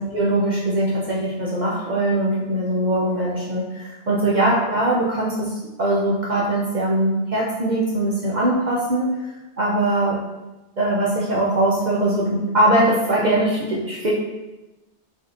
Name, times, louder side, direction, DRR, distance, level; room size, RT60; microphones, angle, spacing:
voice 1, 0.0-9.1 9.6-10.2 10.8-14.1, right 1 dB, 50° right, -5 dB, 0.6 m, -21 dB
4.8 x 2.4 x 2.5 m, 1.0 s
omnidirectional pair, 1.1 m